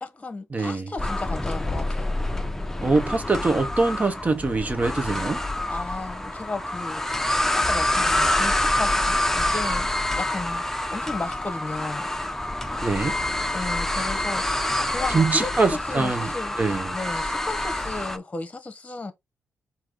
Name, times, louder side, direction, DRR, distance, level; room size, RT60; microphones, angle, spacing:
voice 1, 0.0-2.2 5.7-9.9 10.2-10.6 10.9-12.1 13.5-14.6 14.9-16.6 16.9-19.1, left 3 dB, 25° left, 1.1 m, -34 dB
voice 2, 0.5-0.9 2.8-5.4 12.8-13.2 15.1-16.3 16.6-16.9, right 3 dB, 30° right, 1.1 m, -23 dB
sound 1, 1.0-18.2, left 1 dB, 10° left, 0.7 m, -27 dB
4.6 x 2.8 x 3.9 m
supercardioid pair, 55°, 5 cm